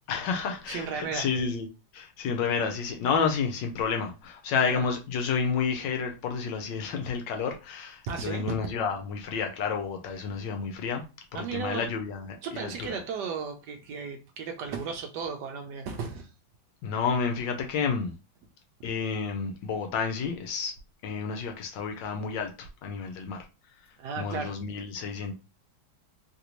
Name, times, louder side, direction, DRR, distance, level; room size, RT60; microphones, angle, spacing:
voice 1, 0.1-1.7 1.9-11.0 11.3-12.9 16.8-18.1 18.8-20.7 21.0-23.4 24.2-25.3, left 5 dB, 75° left, 1.1 m, -30 dB
voice 2, 0.7-1.3 4.6-4.9 8.1-8.5 11.3-11.9 12.4-16.3 24.0-24.5, right 5 dB, 75° right, 0.9 m, -35 dB
3.3 x 2.5 x 2.9 m
omnidirectional pair, 2.3 m